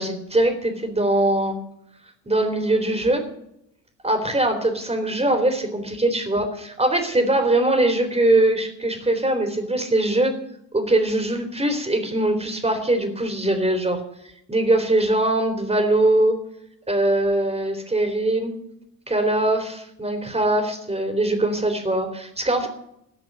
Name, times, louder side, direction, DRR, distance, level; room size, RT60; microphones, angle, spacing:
voice 1, 0.0-1.6 2.3-3.2 4.0-10.3 10.7-14.0 14.5-16.4 16.9-18.5 19.1-22.7, right 1 dB, 10° right, 5 dB, 3.9 m, -21 dB
17.0 x 6.1 x 9.9 m, 0.78 s
figure-of-eight pair, 65°, 49 cm